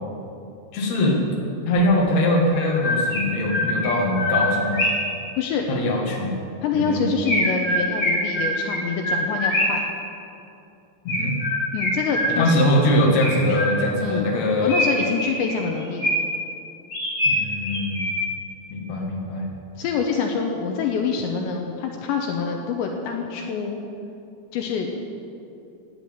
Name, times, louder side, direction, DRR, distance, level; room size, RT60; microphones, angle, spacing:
voice 1, 0.7-1.2 1.7-4.8 5.7-6.4 6.7-7.0 11.0-11.3 12.3-14.8 17.2-18.0 18.7-19.5, left 1 dB, 50° left, -1 dB, 2.5 m, -22 dB
Chirp tweet, 1.8-1.9 2.5-5.2 7.3-9.9 11.1-12.7 13.2-14.1 14.7-16.4 16.9-18.4, left 1 dB, 30° left, 4.4 m, -24 dB
voice 2, 5.4-5.7 6.6-9.8 11.7-12.6 13.5-13.6 14.0-14.3 14.6-16.2 19.8-23.8 24.5-25.0, left 5 dB, 80° left, 2 dB, 3.0 m, -26 dB
11.5 x 9.7 x 8.8 m, 2.7 s
omnidirectional pair, 5.4 m